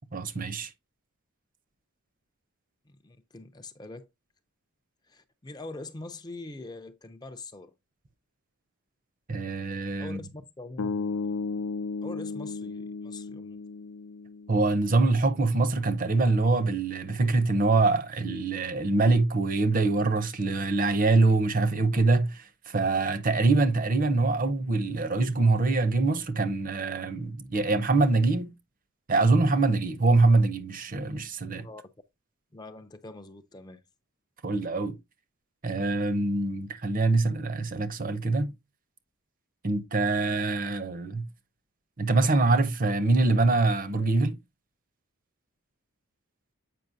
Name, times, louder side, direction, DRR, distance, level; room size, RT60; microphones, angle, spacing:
voice 1, 0.1-0.7 9.3-10.2 14.5-28.5 29.1-31.7 34.4-34.9 35.6-38.5 39.6-41.3 42.0-44.4, right 3 dB, 40° right, 0.7 m, -24 dB
voice 2, 2.9-4.1 5.1-7.7 10.0-11.1 12.0-13.6 31.6-31.8 32.5-33.8, left 2 dB, 20° left, 0.4 m, -43 dB
sound 1, 10.8-14.9, left 4 dB, 85° left, 0.5 m, -34 dB
7.7 x 5.4 x 2.6 m
head